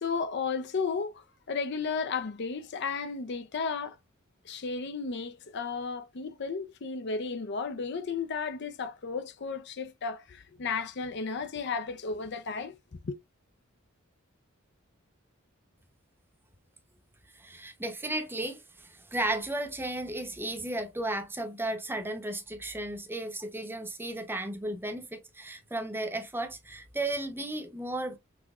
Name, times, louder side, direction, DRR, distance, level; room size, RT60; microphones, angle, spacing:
voice 1, 0.0-4.0 4.5-12.8 13.0-13.2, left 5 dB, 55° left, 0.5 m, -34 dB
voice 2, 17.3-28.2, right 1 dB, 10° right, 0.8 m, -34 dB
6.0 x 3.0 x 2.4 m
head